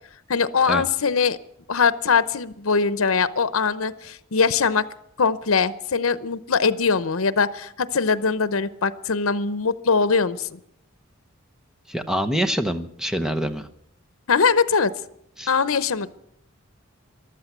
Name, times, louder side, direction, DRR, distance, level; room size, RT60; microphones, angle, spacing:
voice 1, 0.3-1.4 1.7-4.9 5.2-10.6 14.3-14.9 15.5-16.1, left 5 dB, 80° left, 14 dB, 0.8 m, -21 dB
voice 2, 11.9-13.7 15.4-15.5, equal, 5° right, 8 dB, 0.9 m, -25 dB
14.5 x 12.5 x 7.9 m, 0.71 s
head